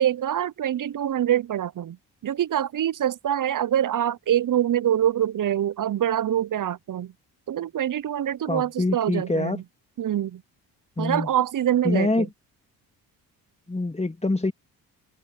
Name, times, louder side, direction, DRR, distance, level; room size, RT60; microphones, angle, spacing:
voice 1, 0.0-2.0 2.2-7.1 7.5-9.6 10.0-10.4 11.0-12.3, right 11 dB, 45° right, 0.8 m, -25 dB
voice 2, 8.5-9.6 11.0-11.3 11.8-12.3 13.7-14.5, left 2 dB, 15° left, 2.5 m, -25 dB
supercardioid pair, 55°, 44 cm